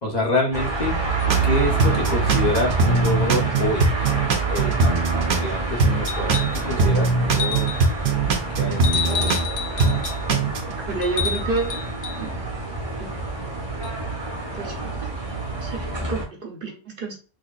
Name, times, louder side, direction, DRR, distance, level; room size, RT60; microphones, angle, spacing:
voice 1, 0.0-0.9 1.4-3.9 4.5-7.7 8.6-9.4, left 2 dB, 45° left, -1 dB, 1.1 m, -26 dB
sound 1, 0.5-16.2, right 3 dB, 25° right, 1.0 m, -27 dB
sound 2, 1.3-1.5 1.8-5.5 5.8-9.5 9.8-10.7, right 4 dB, 80° right, 1.0 m, -21 dB
sound 3, 6.1-6.7 7.3-7.9 8.8-10.2 11.0-12.2 13.8-13.9, left 7 dB, 80° left, 0.9 m, -29 dB
voice 2, 10.9-11.8 12.2-12.3 13.0-13.1 14.5-15.1 15.6-17.2, right 3 dB, 60° right, 2 dB, 1.0 m, -29 dB
4.0 x 2.9 x 2.4 m, 0.36 s
omnidirectional pair, 1.1 m